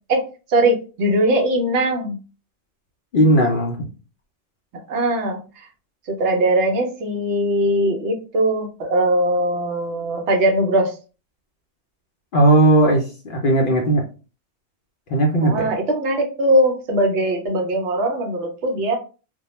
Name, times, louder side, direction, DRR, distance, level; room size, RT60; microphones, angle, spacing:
voice 1, 0.5-2.2 4.7-5.7 6.1-11.0 15.4-19.0, right 1 dB, 70° right, 4 dB, 0.8 m, -20 dB
voice 2, 3.1-3.8 12.3-14.0 15.1-15.7, right 1 dB, 60° left, 0 dB, 0.6 m, -17 dB
2.2 x 2.1 x 2.9 m, 0.34 s
omnidirectional pair, 1.3 m